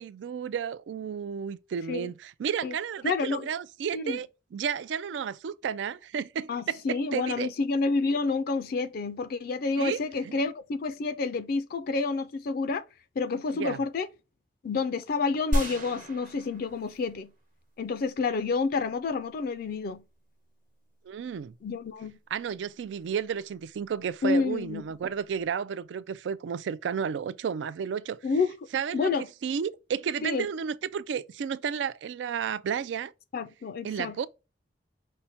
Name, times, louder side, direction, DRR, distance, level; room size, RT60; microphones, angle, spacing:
voice 1, 0.0-7.5 9.8-10.4 13.5-13.8 21.0-21.5 22.3-28.2 28.7-29.1 29.4-33.1 33.8-34.3, right 7 dB, 80° right, 0.3 m, -32 dB
voice 2, 3.0-3.5 3.9-4.2 6.5-12.8 13.2-14.1 14.6-17.3 17.8-20.0 21.6-22.2 24.2-24.8 28.2-28.5 28.9-29.3 30.2-30.5 33.3-34.3, left 4 dB, 55° left, 0.4 m, -29 dB
sound 1, 15.5-17.3 17.8-17.9, equal, 50° right, 1.0 m, -31 dB
5.6 x 2.1 x 4.0 m
head